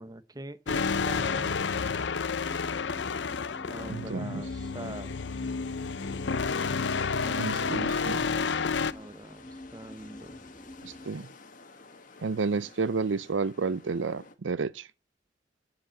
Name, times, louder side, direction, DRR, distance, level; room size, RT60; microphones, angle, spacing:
voice 1, 0.0-1.6 3.7-5.1 7.2-10.4, right 2 dB, 20° right, 0.7 m, -44 dB
sound 1, 0.7-8.9, left 5 dB, 70° left, 0.6 m, -30 dB
sound 2, 2.4-11.1, left 1 dB, 20° left, 0.8 m, -48 dB
voice 2, 3.9-4.4 7.4-8.3 10.8-11.3 12.2-14.9, right 4 dB, 85° right, 0.5 m, -31 dB
sound 3, 4.6-14.4, left 3 dB, 45° left, 1.5 m, -52 dB
15.0 x 5.1 x 8.9 m
head